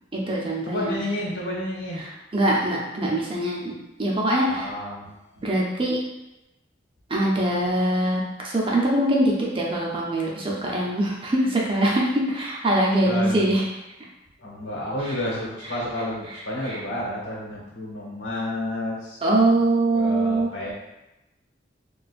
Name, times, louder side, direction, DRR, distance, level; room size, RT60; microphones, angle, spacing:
voice 1, 0.1-1.0 2.3-3.7 4.0-4.7 5.4-6.0 7.1-13.6 16.7-16.8 19.2-20.5, right 1 dB, 30° right, -3 dB, 0.6 m, -23 dB
voice 2, 0.6-2.0 4.5-5.5 7.1-7.6 13.0-13.5 14.4-19.2 19.9-20.7, left 1 dB, 90° left, -4 dB, 1.1 m, -31 dB
4.1 x 2.4 x 2.4 m, 0.96 s
head